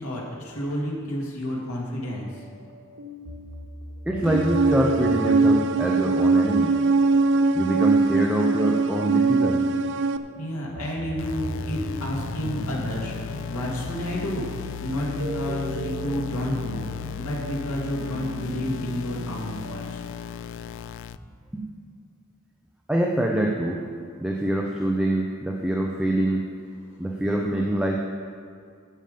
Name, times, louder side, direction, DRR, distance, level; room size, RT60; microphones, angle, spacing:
voice 1, 0.0-2.4 10.4-20.0, equal, 85° left, -3 dB, 2.5 m, -30 dB
sound 1, 2.3-20.2, right 1 dB, 85° right, 1.7 m, -38 dB
voice 2, 4.1-6.7 7.5-9.6 21.5-21.6 22.9-23.8 24.2-26.5 27.0-28.0, right 1 dB, 5° right, -1 dB, 0.7 m, -25 dB
sound 2, 4.3-10.2, right 3 dB, 55° right, 0.5 m, -21 dB
sound 3, 11.2-21.2, left 9 dB, 60° left, 0.3 m, -36 dB
13.0 x 7.2 x 5.3 m, 2.2 s
head